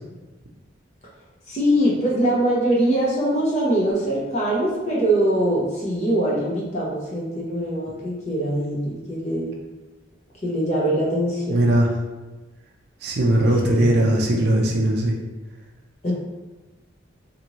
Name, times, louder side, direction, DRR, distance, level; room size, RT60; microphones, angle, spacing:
voice 1, 1.5-9.5 10.4-11.6 13.6-14.0 16.0-16.1, right 1 dB, 35° left, -5 dB, 0.7 m, -22 dB
voice 2, 11.5-11.9 13.0-15.1, right 1 dB, 55° right, -1 dB, 0.4 m, -19 dB
2.9 x 2.5 x 2.8 m, 1.2 s
head